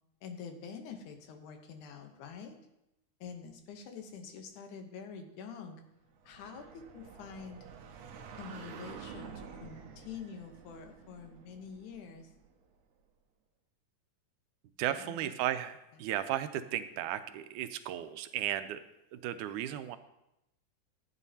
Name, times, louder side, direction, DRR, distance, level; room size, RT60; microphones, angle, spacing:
voice 1, 0.2-2.6 3.2-5.8 6.2-7.7 8.4-12.3 14.9-15.4 15.9-16.0, left 6 dB, 80° left, 5 dB, 2.4 m, -46 dB
sound 1, 6.1-12.7, right 6 dB, 70° right, 2.1 m, -50 dB
voice 2, 14.8-18.8 19.1-20.0, right 12 dB, 90° right, 11 dB, 2.0 m, -35 dB
13.5 x 8.9 x 2.8 m, 0.87 s
omnidirectional pair, 3.4 m